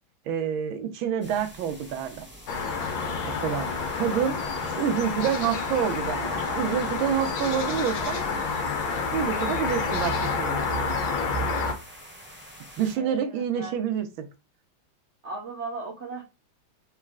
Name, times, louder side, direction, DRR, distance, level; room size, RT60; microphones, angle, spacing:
voice 1, 0.3-2.3 3.2-8.2 9.1-10.6 12.8-14.3, right 8 dB, 85° right, 1.5 m, -28 dB
sound 1, 1.2-13.0, equal, 5° right, 1.1 m, -47 dB
sound 2, 2.5-11.7, left 4 dB, 75° left, 1.7 m, -29 dB
voice 2, 12.9-13.8 15.2-16.2, right 3 dB, 65° right, 0.6 m, -38 dB
4.2 x 3.3 x 3.6 m
omnidirectional pair, 2.2 m